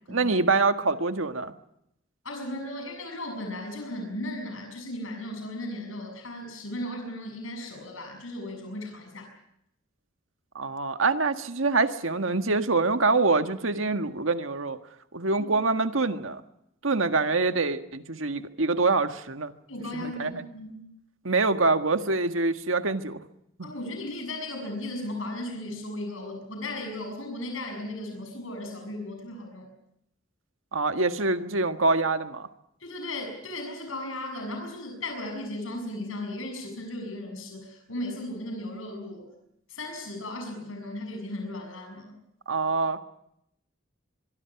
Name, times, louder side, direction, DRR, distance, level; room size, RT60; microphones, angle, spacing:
voice 1, 0.1-1.5 10.5-14.8 15.1-16.4 16.8-19.5 19.9-20.4 21.2-23.2 23.6-23.7 30.7-32.5 42.5-43.0, right 3 dB, 85° right, 8 dB, 1.7 m, -25 dB
voice 2, 2.2-9.3 15.4-15.5 19.7-20.8 23.6-29.7 32.8-39.3 39.7-42.1, left 1 dB, 90° left, 4 dB, 6.8 m, -36 dB
24.0 x 24.0 x 5.9 m, 0.78 s
head